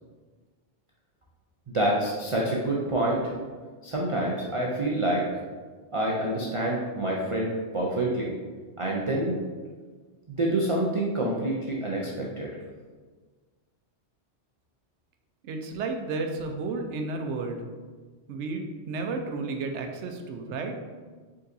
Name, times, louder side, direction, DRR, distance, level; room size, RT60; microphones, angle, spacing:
voice 1, 1.7-3.3 3.8-5.3 5.9-8.3 8.8-9.4 10.3-12.5, right 1 dB, 40° right, -3 dB, 0.4 m, -27 dB
voice 2, 15.4-17.6 18.3-20.8, right 3 dB, 80° right, 4 dB, 0.9 m, -32 dB
5.2 x 3.9 x 2.6 m, 1.4 s
omnidirectional pair, 1.2 m